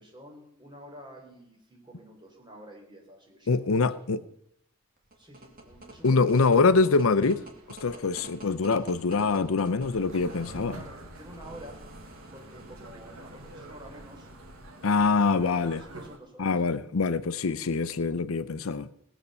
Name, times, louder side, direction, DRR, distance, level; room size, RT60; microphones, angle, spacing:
voice 1, 0.0-3.7 5.2-6.5 7.9-8.3 10.3-11.8 12.3-14.3 15.0-16.5, right 1 dB, 20° right, 3.9 m, -49 dB
voice 2, 3.5-4.3 6.0-10.8 14.8-15.8 16.4-18.9, left 4 dB, 80° left, 0.6 m, -24 dB
sound 1, 5.0-15.7, right 1 dB, 40° right, 2.6 m, -50 dB
sound 2, 9.8-16.2, right 1 dB, 90° right, 1.8 m, -46 dB
18.5 x 8.1 x 6.9 m
head